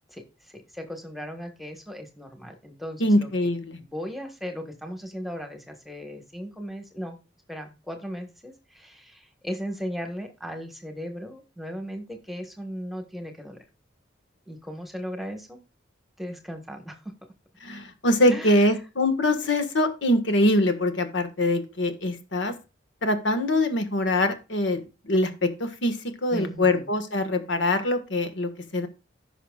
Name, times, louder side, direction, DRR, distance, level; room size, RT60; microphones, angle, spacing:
voice 1, 0.4-3.3 3.8-7.2 7.5-13.6 14.5-15.6 16.2-17.2 18.3-18.6 26.3-26.9, equal, ahead, 4 dB, 1.4 m, -37 dB
voice 2, 3.0-3.8 17.6-22.5 23.0-26.0 26.2-28.9, left 1 dB, 75° left, 8 dB, 1.5 m, -23 dB
15.5 x 6.0 x 2.4 m, 0.29 s
head